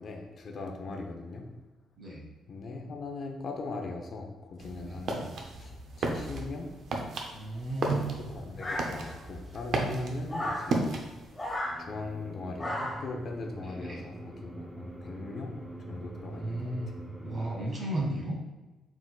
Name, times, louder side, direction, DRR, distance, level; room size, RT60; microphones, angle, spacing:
voice 1, 0.0-1.5 2.5-5.7 6.0-6.7 8.3-10.9 11.9-15.5 15.9-16.7, left 3 dB, 50° left, 2 dB, 0.7 m, -39 dB
sound 1, 4.6-11.5, right 2 dB, 60° right, 0.6 m, -35 dB
voice 2, 7.3-8.2 9.9-10.1 13.6-14.0 16.3-17.0 17.2-18.4, right 1 dB, 45° right, -3 dB, 1.4 m, -35 dB
sound 2, 8.6-9.3 10.3-10.7 11.4-11.8 12.6-13.1, left 1 dB, 20° left, 1.1 m, -34 dB
sound 3, 11.6-17.6, right 1 dB, 15° right, 0.6 m, -43 dB
4.6 x 4.0 x 2.3 m, 1.1 s
cardioid pair, 90°, 0 cm